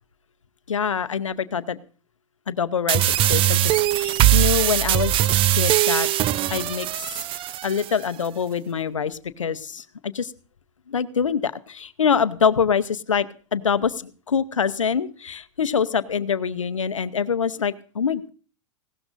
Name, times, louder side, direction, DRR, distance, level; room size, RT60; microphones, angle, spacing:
voice 1, 0.7-1.8 2.5-6.1 6.5-7.2 7.6-10.3 10.9-18.3, left 6 dB, 85° left, 13 dB, 0.8 m, -25 dB
sound 1, 2.9-7.9, right 14 dB, 35° right, 0.6 m, -20 dB
19.0 x 16.5 x 2.6 m, 0.38 s
hypercardioid pair, 95°, 16 cm